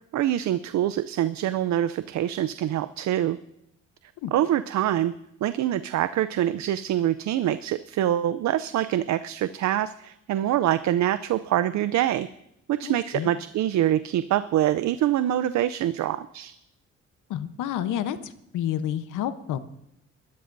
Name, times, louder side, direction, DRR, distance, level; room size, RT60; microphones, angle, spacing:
voice 1, 0.1-3.4 4.3-5.1 5.4-12.3 12.7-16.5, right 12 dB, 70° right, 13 dB, 0.6 m, -25 dB
voice 2, 12.8-13.3 17.3-19.6, left 10 dB, 90° left, 11 dB, 1.0 m, -30 dB
23.0 x 13.0 x 2.6 m, 0.81 s
cardioid pair, 90°, 30 cm